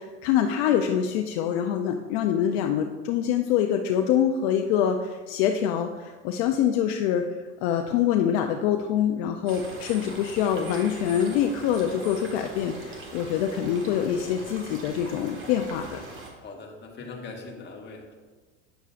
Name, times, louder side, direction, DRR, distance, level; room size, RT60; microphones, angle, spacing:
voice 1, 0.0-7.2 7.6-16.0, left 9 dB, 65° left, 5 dB, 0.6 m, -25 dB
sound 1, 9.5-16.3, right 2 dB, 35° right, 1.6 m, -41 dB
voice 2, 16.4-18.1, left 3 dB, 30° left, 0 dB, 1.5 m, -41 dB
9.0 x 6.7 x 2.5 m, 1.3 s
supercardioid pair, 105°, 36 cm